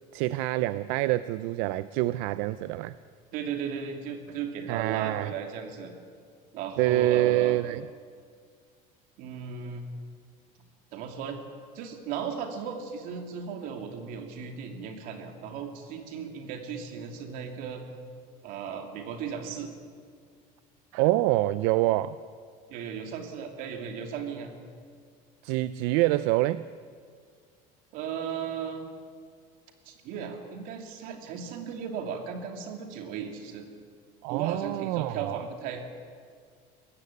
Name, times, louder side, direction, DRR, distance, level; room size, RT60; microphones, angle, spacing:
voice 1, 0.1-3.0 4.7-5.3 6.8-7.9 20.9-22.2 25.4-26.6 34.2-35.4, right 16 dB, 80° right, 15 dB, 0.5 m, -26 dB
voice 2, 3.3-5.9 6.5-7.6 9.2-9.9 10.9-11.4 11.7-17.9 18.4-19.7 22.7-24.5 27.9-28.9 29.8-33.6 34.3-35.8, right 7 dB, 55° right, 4 dB, 2.7 m, -36 dB
20.5 x 15.5 x 8.5 m, 2.1 s
cardioid pair, 170°, 17 cm